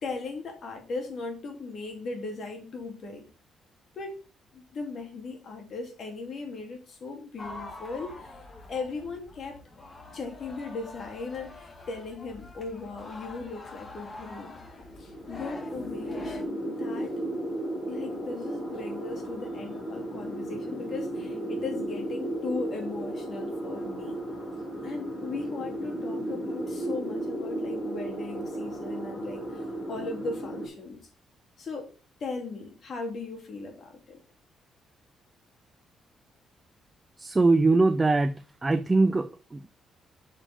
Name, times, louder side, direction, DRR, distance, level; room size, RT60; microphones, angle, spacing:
voice 1, 0.0-3.2 3.9-4.2 4.5-8.4 8.7-9.6 10.1-14.6 15.0-16.4 16.7-17.1 17.9-24.2 24.8-31.0 31.6-31.9 32.2-34.2, left 3 dB, 55° left, 2.8 m, -38 dB
sound 1, 7.4-16.4, left 2 dB, 35° left, 1.9 m, -45 dB
sound 2, 14.7-30.7, right 1 dB, 15° left, 4.4 m, -34 dB
voice 2, 37.2-39.7, right 3 dB, 25° right, 0.5 m, -23 dB
7.0 x 5.3 x 5.2 m
cardioid pair, 90°, 0 cm